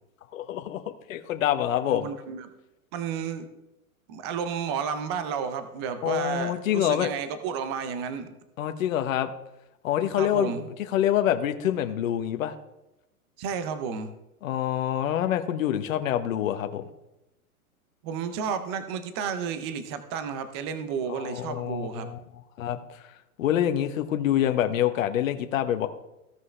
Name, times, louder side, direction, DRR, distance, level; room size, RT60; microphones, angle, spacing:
voice 1, 0.3-2.1 6.0-7.1 8.6-9.3 9.8-10.6 10.9-12.5 14.4-16.9 21.1-22.2 22.6-22.8 23.4-25.9, left 11 dB, 65° left, 8 dB, 1.1 m, -26 dB
voice 2, 1.9-2.5 2.9-3.5 4.1-8.3 10.2-10.6 13.4-14.1 18.0-22.1, right 6 dB, 20° right, 10 dB, 0.4 m, -32 dB
16.0 x 5.5 x 3.2 m, 0.92 s
hypercardioid pair, 150°, 43 cm